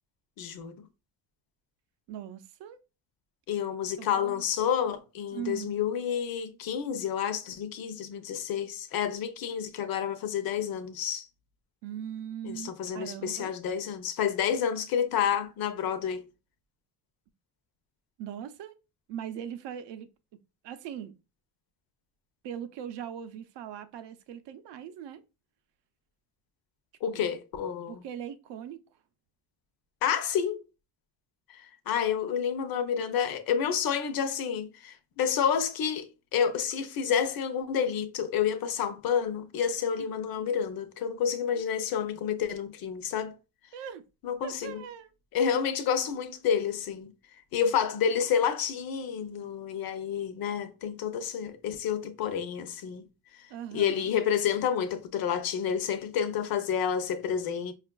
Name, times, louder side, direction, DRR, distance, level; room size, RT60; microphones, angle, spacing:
voice 1, 0.4-0.7 3.5-11.3 12.4-16.3 27.0-28.0 30.0-30.6 31.5-43.3 44.2-44.8 45.3-47.1 47.5-53.1 53.7-57.7, left 8 dB, 50° left, 0.6 m, -29 dB
voice 2, 2.1-2.8 4.0-4.4 5.3-5.7 11.8-13.5 18.2-18.8 19.1-20.1 20.6-21.2 22.4-25.2 27.1-27.2 27.9-28.9 40.0-40.2 41.5-41.6 43.7-44.0 44.4-45.1 46.1-46.2 53.5-54.1, right 9 dB, 70° right, 0.5 m, -40 dB
5.1 x 2.4 x 2.2 m
cardioid pair, 135°, 45 cm